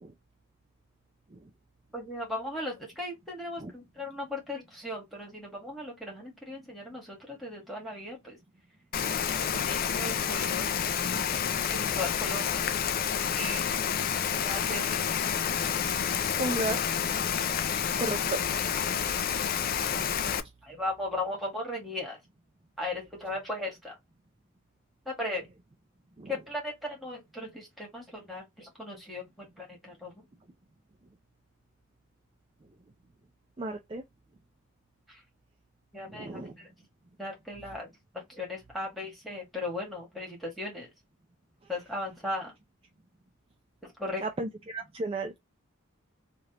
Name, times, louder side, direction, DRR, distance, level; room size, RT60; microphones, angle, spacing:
voice 1, 1.9-8.4 9.2-10.7 11.7-12.7 13.1-13.6 14.4-15.0 19.2-19.3 20.6-22.2 22.8-23.9 25.0-25.5 26.2-30.1 35.1-35.2 35.9-36.7 37.2-40.9 41.7-42.5 44.0-44.2, left 1 dB, ahead, 1.6 m, -37 dB
Rain, 8.9-20.4, left 8 dB, 45° left, 0.3 m, -29 dB
voice 2, 16.4-16.8 17.8-18.4 26.2-26.3 33.6-34.0 36.1-36.5 44.2-45.3, right 2 dB, 25° right, 0.4 m, -33 dB
3.3 x 2.5 x 2.8 m
head